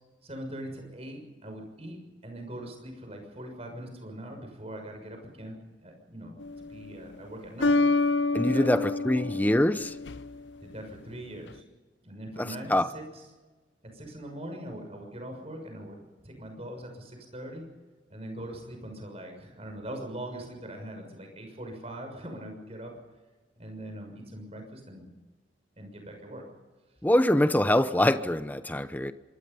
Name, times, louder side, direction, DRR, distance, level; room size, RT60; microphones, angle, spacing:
voice 1, 0.2-5.6 5.8-7.9 8.3-9.6 10.6-11.6 12.0-13.2 13.9-17.6 18.1-22.9 23.6-25.1 25.8-26.4, right 1 dB, 35° right, 6.4 m, -42 dB
sound 1, 6.4-6.9 7.6-10.5, left 3 dB, 75° left, 0.7 m, -27 dB
voice 2, 8.3-9.9 12.4-12.9 27.0-29.1, left 1 dB, 10° left, 0.8 m, -24 dB
26.0 x 22.5 x 5.5 m
head